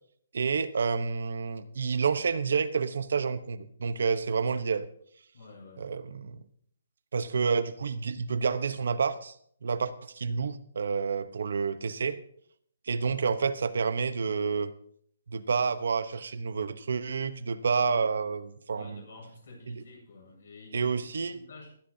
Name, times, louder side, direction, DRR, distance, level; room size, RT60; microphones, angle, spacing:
voice 1, 0.3-4.9 5.8-6.4 7.1-9.3 9.6-12.2 12.9-14.7 15.3-19.0 19.7-19.8 20.7-21.4, right 5 dB, 65° right, 12 dB, 1.0 m, -29 dB
voice 2, 5.3-5.9 18.7-21.0 21.3-21.7, left 2 dB, 60° left, 2 dB, 7.1 m, -49 dB
20.0 x 13.5 x 2.8 m, 0.64 s
hypercardioid pair, 175°, 0 cm